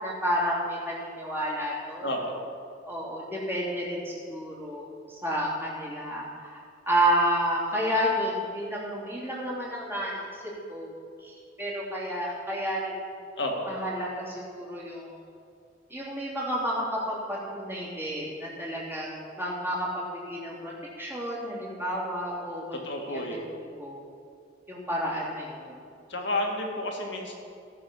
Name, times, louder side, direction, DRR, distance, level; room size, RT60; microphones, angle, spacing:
voice 1, 0.0-2.1 2.8-6.6 6.9-10.4 10.7-10.9 11.2-13.1 13.6-15.2 15.9-23.2 23.6-24.0 24.7-25.8, equal, 10° right, -6 dB, 3.3 m, -31 dB
voice 2, 22.8-23.4 26.1-27.3, left 1 dB, 65° left, 1 dB, 2.0 m, -30 dB
18.0 x 6.6 x 5.4 m, 2.4 s
head